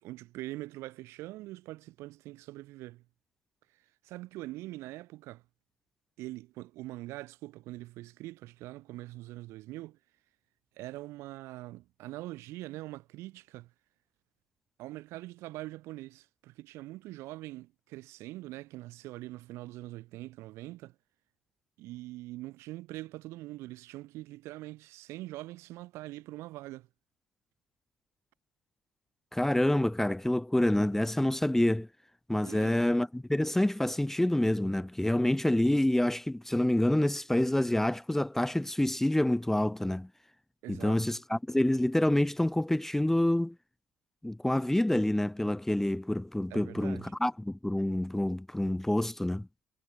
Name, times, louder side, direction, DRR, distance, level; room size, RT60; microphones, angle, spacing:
voice 1, 0.0-3.0 4.0-5.4 6.2-10.0 10.8-13.7 14.8-20.9 21.8-26.9 32.4-32.9 40.6-41.0 46.5-47.1, right 18 dB, 70° right, 1.8 m, -43 dB
voice 2, 29.3-31.9 32.3-40.1 40.7-43.5 44.2-49.5, left 1 dB, 5° left, 0.7 m, -27 dB
hypercardioid pair, 55°, 5 cm